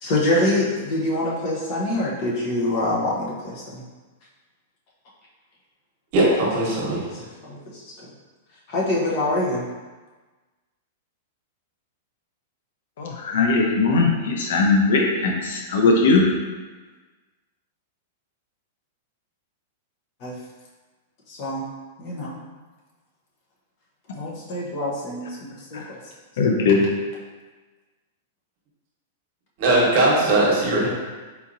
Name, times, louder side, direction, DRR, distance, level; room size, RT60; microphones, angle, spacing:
voice 1, 0.0-3.8 7.0-7.1 7.5-7.6 7.8-7.9 8.7-9.6 20.2-20.4 21.3-21.7 22.0-22.4 24.1-26.0, left 1 dB, 40° left, -5 dB, 0.9 m, -25 dB
voice 2, 6.1-7.0 29.6-30.9, right 2 dB, 45° right, -4 dB, 1.1 m, -19 dB
voice 3, 13.0-16.2 25.7-25.8 26.4-26.8, left 3 dB, 70° left, 0 dB, 0.6 m, -19 dB
4.2 x 2.8 x 2.6 m, 1.3 s
supercardioid pair, 155°, 0 cm